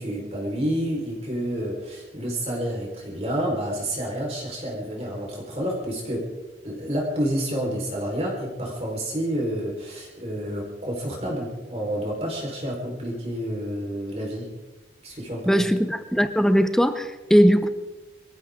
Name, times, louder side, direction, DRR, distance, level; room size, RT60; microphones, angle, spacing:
voice 1, 0.0-6.3 6.6-14.5 15.0-15.6, equal, 35° right, -2 dB, 4.4 m, -29 dB
voice 2, 15.5-17.7, equal, 5° left, 9 dB, 0.8 m, -19 dB
25.0 x 15.0 x 3.7 m, 1.1 s
head